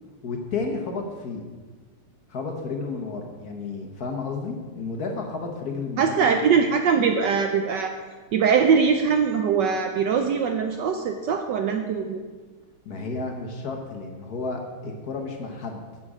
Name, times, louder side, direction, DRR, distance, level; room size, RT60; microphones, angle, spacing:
voice 1, 0.2-1.4 2.3-6.4 12.8-15.8, left 4 dB, 50° left, 2 dB, 1.4 m, -32 dB
voice 2, 6.0-7.9 8.3-12.2, right 6 dB, 70° right, 5 dB, 1.1 m, -22 dB
12.0 x 7.5 x 4.9 m, 1.4 s
omnidirectional pair, 2.4 m